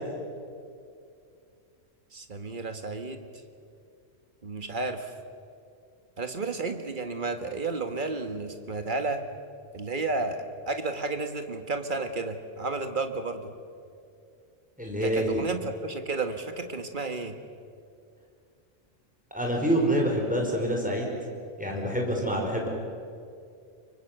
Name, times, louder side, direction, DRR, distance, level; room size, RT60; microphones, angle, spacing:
voice 1, 2.1-3.3 4.4-5.1 6.2-9.2 9.7-10.4 10.7-13.5 15.0-17.3, right 3 dB, 40° right, 7 dB, 1.9 m, -32 dB
voice 2, 14.8-15.4 19.3-21.2 21.6-22.7, equal, 5° right, -1 dB, 5.3 m, -26 dB
24.5 x 24.0 x 8.1 m, 2.4 s
omnidirectional pair, 1.3 m